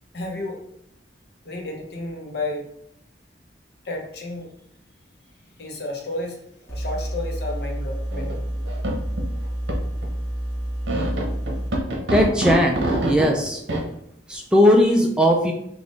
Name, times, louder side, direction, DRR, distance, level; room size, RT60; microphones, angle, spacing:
voice 1, 0.1-0.6 1.4-2.7 3.8-4.5 5.6-8.4, left 2 dB, 60° left, 1 dB, 0.8 m, -32 dB
sound 1, 6.7-11.7, right 1 dB, 15° left, 1.2 m, -29 dB
sound 2, 8.1-8.4 8.7-9.3 9.7-9.8 10.0-10.1 10.9-13.3 13.7-13.8, right 1 dB, 75° right, 0.8 m, -24 dB
voice 2, 12.1-13.6 14.3-15.5, equal, 5° right, 1 dB, 0.3 m, -18 dB
3.4 x 2.4 x 3.9 m, 0.73 s
head